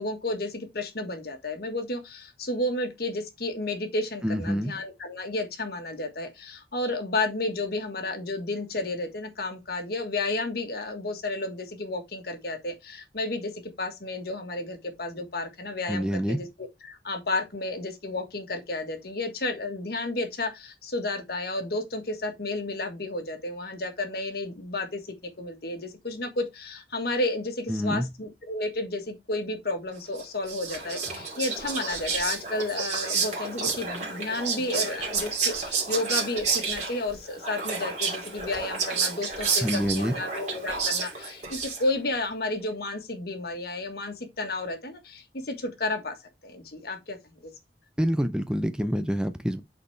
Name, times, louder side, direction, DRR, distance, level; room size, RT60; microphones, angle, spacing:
voice 1, 0.0-13.5 13.8-25.0 25.4-46.2 46.4-47.2 47.4-47.5, left 2 dB, 60° left, 1.5 m, -32 dB
voice 2, 4.2-4.7 15.9-16.4 27.7-28.1 39.6-40.1 48.0-49.6, equal, 5° right, 0.4 m, -26 dB
Whispering, 30.2-42.1, right 5 dB, 40° right, 2.5 m, -30 dB
8.5 x 4.2 x 3.3 m
head